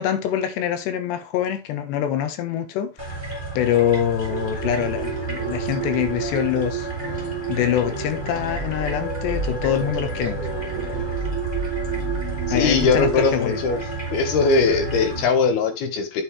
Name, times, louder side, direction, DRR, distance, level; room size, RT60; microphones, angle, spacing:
voice 1, 0.0-3.1 3.6-6.9 7.5-10.4 10.7-11.1 12.5-13.6, left 10 dB, 85° left, 3.6 m, -24 dB
sound 1, 3.0-15.2, right 2 dB, 5° left, 3.7 m, -31 dB
sound 2, 4.3-15.3, right 12 dB, 75° right, 2.4 m, -33 dB
Piano, 4.5-11.4, left 4 dB, 50° left, 3.4 m, -40 dB
voice 2, 12.5-13.8 14.1-16.2, left 4 dB, 70° left, 3.5 m, -20 dB
8.9 x 8.3 x 3.4 m
omnidirectional pair, 4.8 m